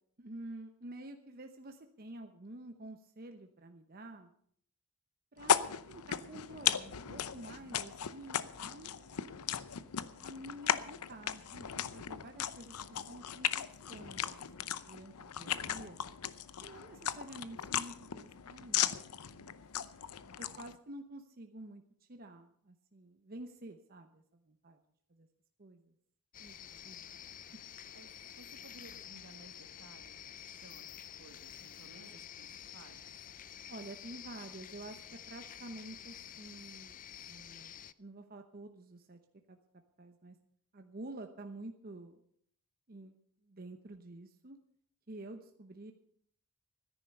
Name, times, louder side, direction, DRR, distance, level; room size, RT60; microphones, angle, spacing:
voice 1, 0.2-4.3 5.3-9.2 10.2-16.0 16.6-19.6 20.4-21.8 22.1-24.8 25.1-25.3 25.6-25.9 26.4-27.1 33.7-37.0 37.3-39.2 39.5-39.6 40.0-40.4 40.7-42.2 42.9-43.2 43.4-44.6 45.1-45.9, right 1 dB, 40° right, 5 dB, 0.9 m, -49 dB
sound 1, 5.4-20.8, left 9 dB, 85° left, 0.7 m, -37 dB
sound 2, 26.3-37.9, left 10 dB, 35° left, 0.4 m, -50 dB
voice 2, 27.9-33.0, right 2 dB, 80° right, 6 dB, 1.8 m, -58 dB
13.5 x 10.5 x 6.7 m, 0.64 s
head